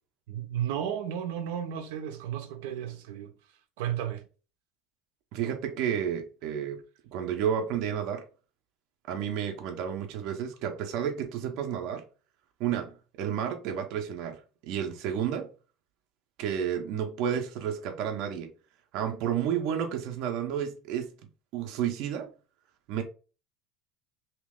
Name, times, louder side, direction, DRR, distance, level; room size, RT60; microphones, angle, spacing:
voice 1, 0.3-3.3 3.8-4.2, right 10 dB, 90° right, 0.7 m, -33 dB
voice 2, 5.3-6.8 7.1-8.2 9.1-12.0 12.6-14.4 14.6-15.5 16.4-18.5 18.9-21.1 21.5-22.3 22.9-23.0, right 8 dB, 50° right, 0.6 m, -31 dB
3.1 x 2.8 x 3.5 m
cardioid pair, 175°, 0 cm